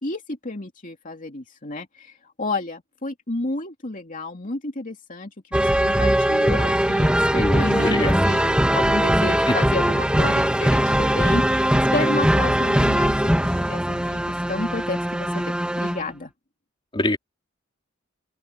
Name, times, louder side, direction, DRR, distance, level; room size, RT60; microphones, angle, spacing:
voice 1, 0.0-16.3, left 2 dB, 40° left, 2.7 m, -31 dB
sound 1, 5.5-16.0, equal, 5° right, 1.4 m, -20 dB
voice 2, 7.3-8.3 16.9-17.2, left 1 dB, 25° left, 3.2 m, -24 dB
open air
head